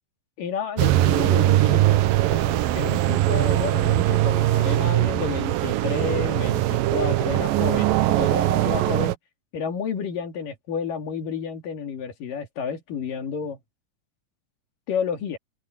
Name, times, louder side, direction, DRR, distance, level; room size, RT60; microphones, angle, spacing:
voice 1, 0.4-2.0 2.3-9.2 9.5-13.6 14.9-15.4, left 6 dB, 75° left, 4.1 m, -31 dB
sound 1, 0.8-9.2, right 14 dB, 85° right, 2.7 m, -21 dB
open air
omnidirectional pair, 3.9 m